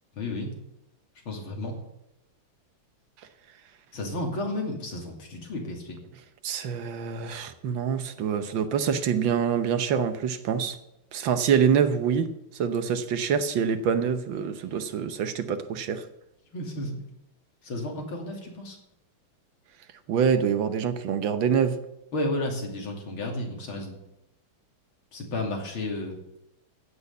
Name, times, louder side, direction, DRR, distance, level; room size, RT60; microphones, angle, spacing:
voice 1, 0.2-0.5 1.3-1.8 3.9-6.0 16.5-17.0 17.6-18.8 22.1-24.0 25.1-26.2, left 1 dB, 75° left, 1 dB, 3.6 m, -32 dB
voice 2, 6.4-10.8 11.1-12.3 12.6-16.0 20.1-21.8, right 7 dB, 70° right, 10 dB, 1.6 m, -25 dB
15.0 x 6.3 x 8.2 m, 0.87 s
omnidirectional pair, 2.3 m